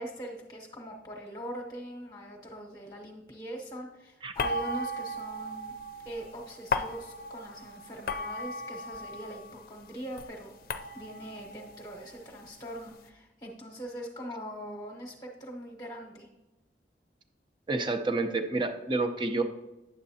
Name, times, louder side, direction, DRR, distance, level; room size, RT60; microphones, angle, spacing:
voice 1, 0.0-5.7 6.0-10.5 10.9-16.3, equal, 20° left, 0 dB, 1.0 m, -42 dB
sound 1, 4.4-9.6 9.9-12.8, left 1 dB, 55° left, 0.5 m, -36 dB
voice 2, 17.7-19.4, right 3 dB, 25° right, 6 dB, 0.6 m, -29 dB
9.7 x 7.3 x 2.8 m, 1.1 s
head